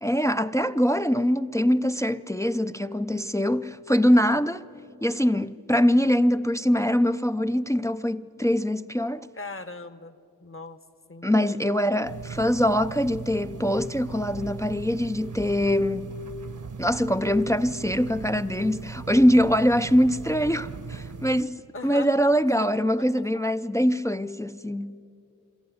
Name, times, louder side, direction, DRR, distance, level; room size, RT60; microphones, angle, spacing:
voice 1, 0.0-4.7 5.0-9.3 11.2-16.1 16.8-25.0, equal, 10° left, 0.4 m, -23 dB
voice 2, 9.4-10.2 10.4-10.8 11.1-11.8 21.7-22.2 23.2-23.4, left 3 dB, 35° left, 1.1 m, -39 dB
sound 1, 12.1-21.4, right 5 dB, 50° right, 1.0 m, -39 dB
23.5 x 13.5 x 9.3 m
cardioid pair, 45°, 38 cm